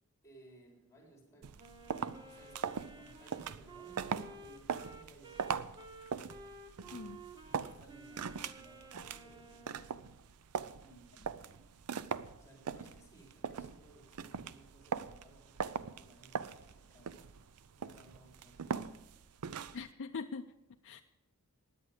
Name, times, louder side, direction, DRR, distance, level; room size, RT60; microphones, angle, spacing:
voice 1, 0.2-1.6 2.3-2.6 2.9-5.8 7.4-10.0 10.8-11.7 12.4-17.2 17.8-18.9, right 2 dB, 15° left, -1 dB, 3.7 m, -61 dB
sound 1, 1.4-19.9, right 6 dB, 85° right, 0.5 m, -41 dB
Wind instrument woodwind instrument, 1.6-10.1, right 3 dB, 20° right, 1.0 m, -53 dB
voice 2, 6.9-7.2 19.7-20.5 20.8-21.0, left 5 dB, 55° left, 4 dB, 0.5 m, -42 dB
16.5 x 10.0 x 5.0 m, 0.88 s
head